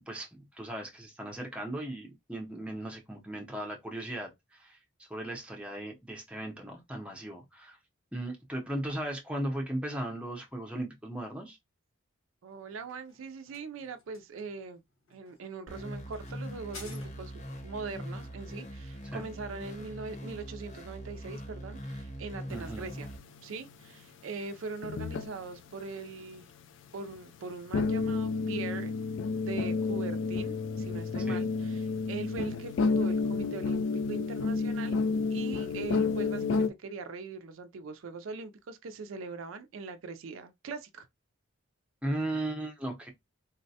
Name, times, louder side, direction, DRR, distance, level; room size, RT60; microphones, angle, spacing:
voice 1, 0.0-4.8 5.1-7.8 8.1-11.6 19.0-19.2 22.5-22.8 31.3-31.5 42.0-43.1, right 1 dB, 5° right, 0.6 m, -37 dB
voice 2, 12.4-14.8 15.1-17.3 17.6-23.1 23.4-26.5 26.9-28.9 29.3-33.8 34.1-35.0 35.3-41.1, right 4 dB, 70° right, 0.4 m, -41 dB
sound 1, 12.5-17.6, left 3 dB, 75° left, 1.2 m, -53 dB
sound 2, 15.7-23.2, equal, 35° left, 0.8 m, -42 dB
sound 3, 22.7-23.7 24.7-25.7 27.1-27.2 27.7-36.7, left 4 dB, 60° left, 0.3 m, -30 dB
3.8 x 2.1 x 2.7 m
head